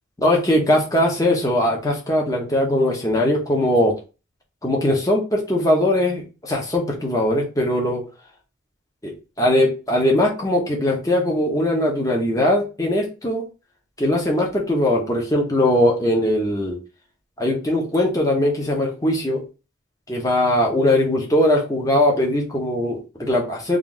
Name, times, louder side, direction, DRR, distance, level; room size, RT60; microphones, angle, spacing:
voice 1, 0.2-3.9 4.6-8.0 9.0-13.4 14.0-16.8 17.4-19.4 20.1-23.8, left 1 dB, 15° left, 0 dB, 0.9 m, -20 dB
3.2 x 2.5 x 3.9 m, 0.31 s
head